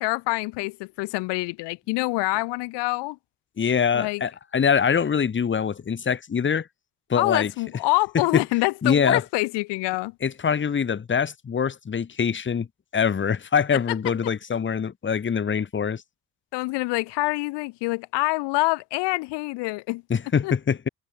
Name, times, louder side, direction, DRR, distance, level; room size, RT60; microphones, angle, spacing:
voice 1, 0.0-3.2 3.9-4.2 7.1-10.2 13.7-14.0 16.5-20.0 20.4-20.5, left 23 dB, 80° left, 1.0 m, -26 dB
voice 2, 3.6-6.7 7.1-7.5 8.8-9.2 10.2-12.7 12.9-16.0 20.1-20.9, left 7 dB, 30° left, 1.0 m, -24 dB
supercardioid pair, 60°, 41 cm